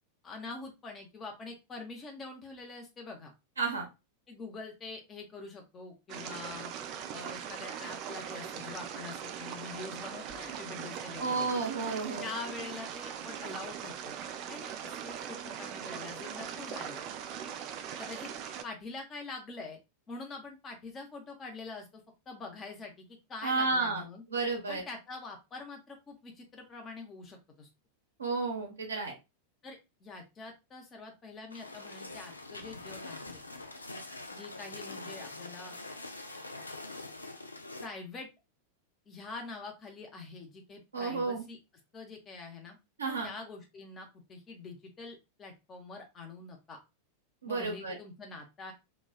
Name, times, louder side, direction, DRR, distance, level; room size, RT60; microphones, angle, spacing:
voice 1, 0.2-3.3 4.3-6.7 7.1-11.5 12.2-14.1 14.5-17.1 18.0-18.3 18.6-19.8 20.1-24.2 24.7-27.7 29.6-33.4 34.3-35.8 37.8-38.3 39.1-41.6 41.9-42.8 43.2-46.8 47.5-48.7, left 3 dB, 25° left, 2 dB, 0.7 m, -45 dB
voice 2, 3.6-3.9 11.2-12.3 23.4-24.0 24.3-24.8 28.2-29.1 40.9-41.4 43.0-43.3 47.4-48.0, right 4 dB, 75° right, 0 dB, 0.9 m, -31 dB
sound 1, 6.1-18.6, right 8 dB, 40° right, 0.3 m, -40 dB
sound 2, 31.5-37.9, left 2 dB, 80° left, 0.3 m, -44 dB
3.1 x 2.3 x 2.3 m, 0.24 s
figure-of-eight pair, 90°, 0 cm